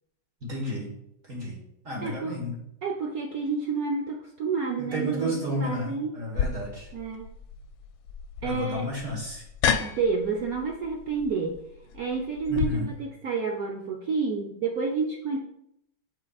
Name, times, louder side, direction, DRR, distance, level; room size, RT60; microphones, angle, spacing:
voice 1, 0.5-0.9 1.3-1.6 1.8-2.6 4.8-6.9 8.4-9.4 12.5-12.8, equal, 40° right, -2 dB, 1.7 m, -31 dB
voice 2, 2.0-2.4 2.8-6.1 6.9-7.3 8.4-8.9 9.8-11.6 11.9-15.4, right 4 dB, 70° right, 0 dB, 0.8 m, -29 dB
sound 1, 6.3-12.7, left 7 dB, 80° left, 1.3 m, -32 dB
8.4 x 5.6 x 2.4 m, 0.78 s
omnidirectional pair, 2.2 m